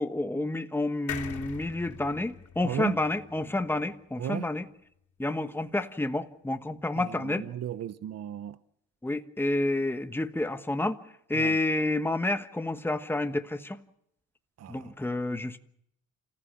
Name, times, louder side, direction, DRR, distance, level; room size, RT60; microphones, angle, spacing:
voice 1, 0.0-4.7 5.2-7.5 9.0-11.0 11.3-13.8 14.7-15.6, left 2 dB, 5° left, 1.3 m, -29 dB
sound 1, 1.1-4.6 4.9-5.0 5.2-5.3, left 10 dB, 75° left, 3.2 m, -42 dB
voice 2, 2.6-3.0 4.2-4.4 7.0-8.6 11.3-11.6 14.6-14.9, right 10 dB, 55° right, 0.9 m, -35 dB
28.0 x 15.5 x 7.4 m
cardioid pair, 90°, 30 cm